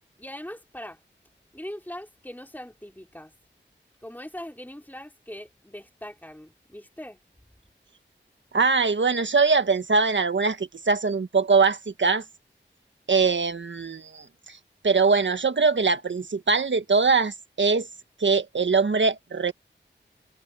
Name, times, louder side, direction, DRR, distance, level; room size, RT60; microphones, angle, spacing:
voice 1, 0.2-1.0 1.5-3.3 4.0-7.2, left 1 dB, 10° left, 4.0 m, -41 dB
voice 2, 8.5-12.2 13.1-14.6 14.8-17.9 18.2-19.5, right 4 dB, 75° right, 1.5 m, -22 dB
cardioid pair, 40°, 19 cm